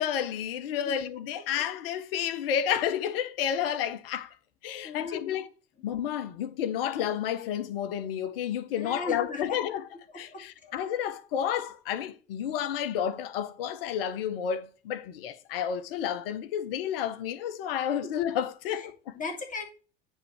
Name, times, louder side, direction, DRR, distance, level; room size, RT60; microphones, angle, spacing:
voice 1, 0.0-4.3 4.6-5.5 5.8-9.9 10.1-19.1, left 9 dB, 60° left, 0.8 m, -31 dB
voice 2, 4.8-5.2 8.7-9.4 10.3-10.7 18.0-18.1 18.7-18.8 19.2-19.6, left 3 dB, 25° left, 2.3 m, -37 dB
9.0 x 3.6 x 4.5 m
figure-of-eight pair, 70°, 33 cm